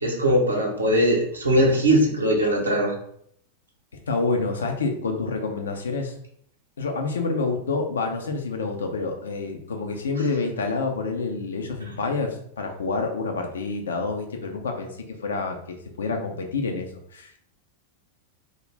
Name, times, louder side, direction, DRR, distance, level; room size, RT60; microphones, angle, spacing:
voice 1, 0.0-2.9, equal, 80° right, -1 dB, 0.7 m, -20 dB
voice 2, 4.1-6.1 6.8-17.4, left 3 dB, 65° left, 4 dB, 0.5 m, -28 dB
2.5 x 2.1 x 3.2 m, 0.67 s
figure-of-eight pair, 90°, 0 cm